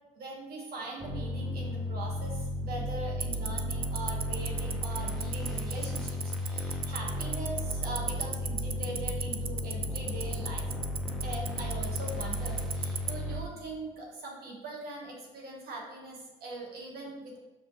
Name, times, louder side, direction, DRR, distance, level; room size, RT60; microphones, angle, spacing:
voice 1, 0.1-10.6 11.2-17.4, right 2 dB, 65° right, 0 dB, 1.5 m, -41 dB
sound 1, 1.0-13.4, left 1 dB, ahead, 0.9 m, -34 dB
Tick-tock, 3.2-13.1, right 7 dB, 35° right, 0.4 m, -32 dB
7.0 x 5.1 x 3.1 m, 1.1 s
cardioid pair, 110°, 17 cm